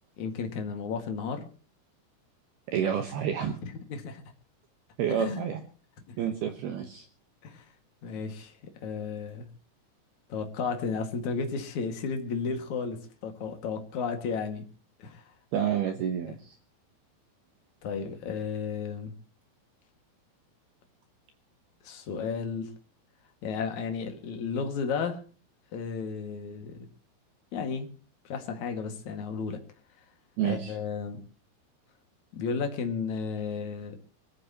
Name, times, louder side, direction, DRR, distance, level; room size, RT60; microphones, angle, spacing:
voice 1, 0.2-1.5 3.6-4.2 5.1-5.4 6.1-6.2 7.4-7.7 8.0-9.5 10.3-14.6 15.0-15.2 17.8-19.1 21.8-22.7 23.4-25.2 25.7-26.8 27.5-27.9 28.2-29.6 30.4-31.2 32.3-34.0, left 5 dB, 50° left, 5 dB, 2.3 m, -33 dB
voice 2, 2.7-3.6 5.0-5.6 6.2-7.1 15.5-16.6 30.4-30.7, right 9 dB, 70° right, 6 dB, 2.4 m, -29 dB
24.5 x 15.0 x 2.9 m, 0.38 s
omnidirectional pair, 6.0 m